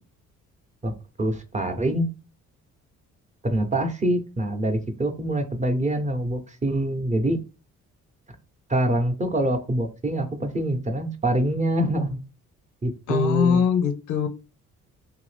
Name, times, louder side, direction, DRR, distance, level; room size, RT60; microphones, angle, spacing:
voice 1, 1.2-2.1 3.4-7.4 8.7-12.2 12.8-13.6, right 1 dB, 25° right, 0.7 m, -25 dB
voice 2, 13.1-14.3, left 7 dB, 80° left, 0.5 m, -22 dB
2.8 x 2.5 x 3.2 m
cardioid pair, 90°, 30 cm